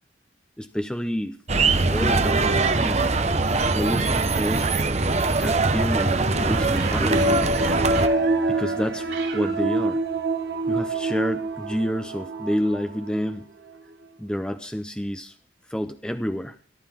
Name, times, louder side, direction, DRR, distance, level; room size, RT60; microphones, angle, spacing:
voice 1, 0.6-1.4 1.9-3.0 3.7-4.7 5.4-7.6 8.5-9.1 9.3-10.0 10.7-13.5 14.2-15.4 15.7-16.6, equal, 5° left, 8 dB, 0.7 m, -29 dB
sound 1, 1.5-8.1, right 3 dB, 35° right, 0.9 m, -22 dB
sound 2, 6.4-9.8 11.1-11.3 11.6-11.7, right 4 dB, 80° right, 4.8 m, -37 dB
sound 3, 7.1-13.3 13.7-13.8, right 2 dB, 55° right, 1.5 m, -26 dB
23.0 x 12.0 x 3.7 m, 0.39 s
head